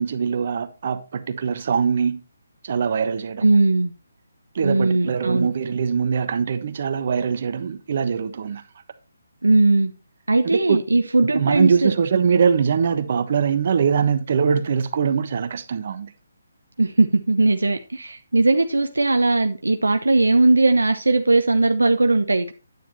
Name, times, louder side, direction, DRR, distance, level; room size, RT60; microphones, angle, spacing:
voice 1, 0.0-2.2 2.6-3.5 4.5-8.6 10.4-10.8 11.2-16.1, right 6 dB, 45° right, 1.2 m, -22 dB
voice 2, 3.4-3.9 4.6-5.5 9.4-9.9 10.3-11.9 16.8-22.5, right 2 dB, 85° right, 0.8 m, -19 dB
9.5 x 9.3 x 3.0 m
figure-of-eight pair, 150°, 0 cm